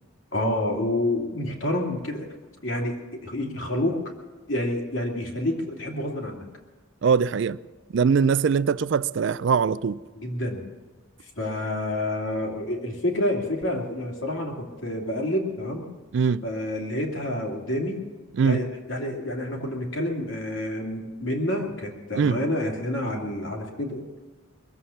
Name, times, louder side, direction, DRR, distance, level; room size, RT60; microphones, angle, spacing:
voice 1, 0.3-2.3 2.6-2.9 3.2-4.0 4.5-6.4 10.1-10.6 11.2-15.8 16.4-18.0 18.4-24.0, left 1 dB, 65° left, 2.6 m, -28 dB
voice 2, 7.0-7.6 7.9-10.0 16.1-16.4 18.4-18.6 22.2-22.4, right 6 dB, 60° right, 0.4 m, -22 dB
21.5 x 7.8 x 7.0 m
head